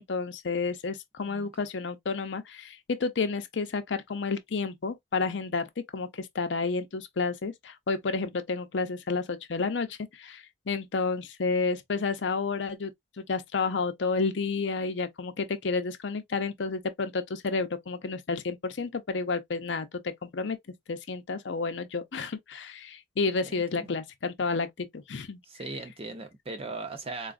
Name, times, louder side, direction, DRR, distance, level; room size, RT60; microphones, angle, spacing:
voice 1, 0.0-12.9 13.2-20.6 20.9-25.4, left 4 dB, 75° left, 0.6 m, -31 dB
voice 2, 1.2-1.7 23.5-23.6 25.5-27.3, right 3 dB, 30° right, 0.7 m, -38 dB
3.9 x 2.4 x 2.4 m
head